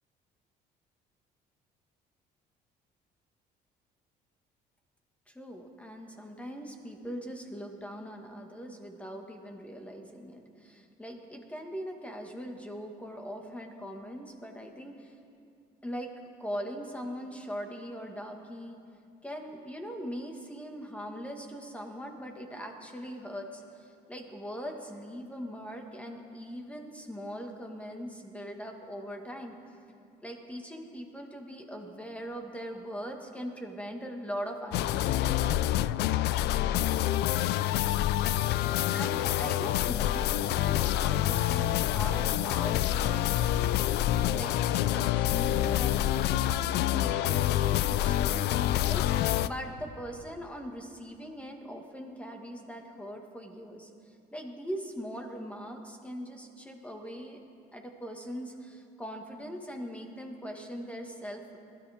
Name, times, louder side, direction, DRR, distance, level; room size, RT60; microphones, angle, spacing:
voice 1, 5.3-15.1 15.8-16.1 16.4-18.8 19.2-29.5 30.2-35.7 38.9-57.4 57.7-61.6, equal, 5° left, 3 dB, 1.7 m, -41 dB
sound 1, 34.7-49.5, left 13 dB, 80° left, 0.4 m, -27 dB
20.5 x 13.5 x 3.6 m, 2.5 s
cardioid pair, 110°, 17 cm